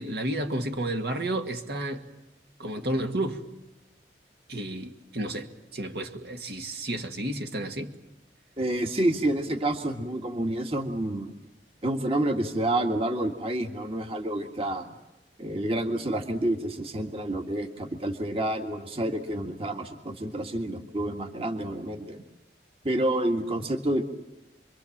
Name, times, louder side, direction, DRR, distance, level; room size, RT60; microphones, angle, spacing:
voice 1, 0.0-2.1 2.6-3.4 4.5-7.9, right 1 dB, 65° right, 2.1 m, -31 dB
voice 2, 8.6-11.3 11.8-14.9 15.4-22.2 22.8-24.0, right 1 dB, 35° right, 1.9 m, -28 dB
29.0 x 23.5 x 7.4 m
head